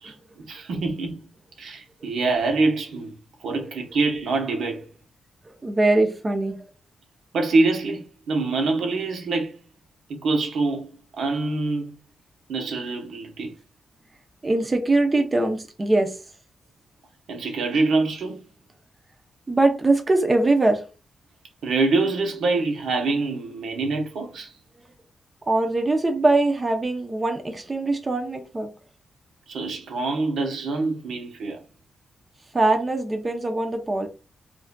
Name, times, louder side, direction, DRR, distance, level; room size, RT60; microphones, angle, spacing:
voice 1, 0.0-1.2 1.6-3.1 3.4-4.8 7.3-9.6 10.1-10.9 11.2-11.9 12.5-13.5 17.3-18.4 21.6-24.5 29.5-31.6, right 3 dB, 85° right, 1.0 m, -25 dB
voice 2, 5.5-6.6 14.4-16.2 19.5-20.8 25.5-28.7 32.5-34.1, right 2 dB, 25° right, 0.6 m, -22 dB
4.9 x 2.5 x 2.2 m
wide cardioid pair, 120°, 0 cm